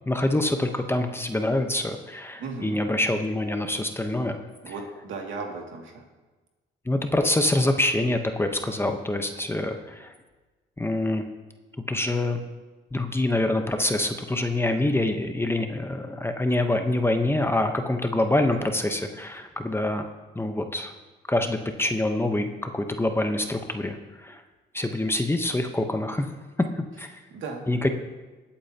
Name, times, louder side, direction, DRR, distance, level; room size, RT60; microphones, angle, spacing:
voice 1, 0.1-4.4 6.9-10.1 10.8-11.3 11.9-12.4 12.9-20.1 20.3-20.9 21.3-24.4 24.7-26.3 27.0-27.1 27.7-27.9, left 1 dB, 10° left, 5 dB, 1.0 m, -25 dB
voice 2, 2.4-2.8 4.6-6.0 27.3-27.7, right 4 dB, 75° right, 0 dB, 2.4 m, -36 dB
21.5 x 8.6 x 2.9 m, 1.2 s
cardioid pair, 90°, 20 cm